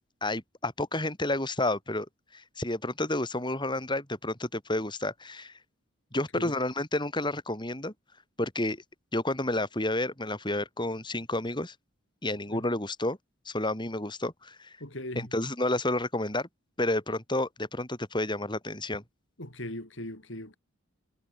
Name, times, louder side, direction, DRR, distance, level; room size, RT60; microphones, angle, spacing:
voice 1, 0.0-2.1 2.3-5.5 6.1-7.9 8.4-8.8 9.1-11.7 12.2-13.2 13.5-14.8 15.2-16.5 16.8-19.0, left 1 dB, 20° left, 5.3 m, -30 dB
voice 2, 14.8-15.3 19.4-20.6, left 1 dB, 60° left, 7.0 m, -39 dB
head